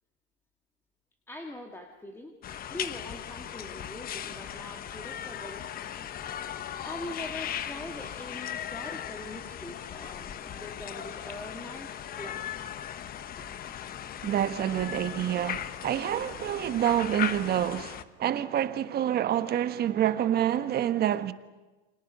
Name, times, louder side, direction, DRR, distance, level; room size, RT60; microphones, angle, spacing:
voice 1, 1.3-2.4 2.7-5.6 6.8-12.4 13.4-13.5, left 1 dB, 5° left, 2.1 m, -42 dB
sound 1, 2.4-18.0, left 10 dB, 25° left, 1.1 m, -38 dB
voice 2, 14.2-21.3, right 11 dB, 30° right, 1.3 m, -27 dB
30.0 x 26.0 x 5.4 m
hypercardioid pair, 120°, 33 cm